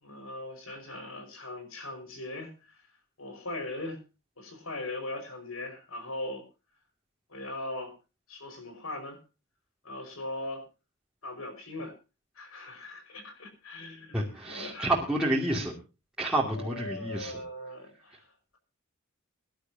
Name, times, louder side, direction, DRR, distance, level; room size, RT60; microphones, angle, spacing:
voice 1, 0.0-2.8 3.2-4.0 4.4-6.4 7.3-7.9 8.3-9.2 9.8-10.7 11.2-11.9 12.4-14.9 16.5-18.2, left 2 dB, 90° left, 6 dB, 5.3 m, -39 dB
voice 2, 14.1-15.7 16.2-17.4, right 1 dB, 5° right, -5 dB, 2.7 m, -29 dB
24.5 x 12.0 x 2.8 m, 0.31 s
head